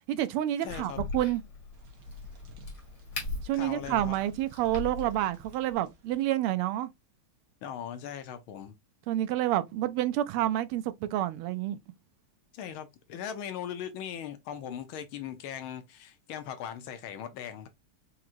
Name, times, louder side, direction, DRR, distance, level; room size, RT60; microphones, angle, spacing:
voice 1, 0.1-1.4 3.4-6.9 9.1-11.8, right 13 dB, 90° right, 1.5 m, -29 dB
voice 2, 0.6-1.0 3.5-4.1 7.6-8.7 12.5-17.7, left 9 dB, 75° left, 1.6 m, -39 dB
Crack, 0.7-5.7, left 3 dB, 60° left, 2.6 m, -40 dB
sound 1, 1.7-6.2, equal, 60° right, 1.0 m, -53 dB
4.9 x 2.9 x 2.5 m
omnidirectional pair, 2.4 m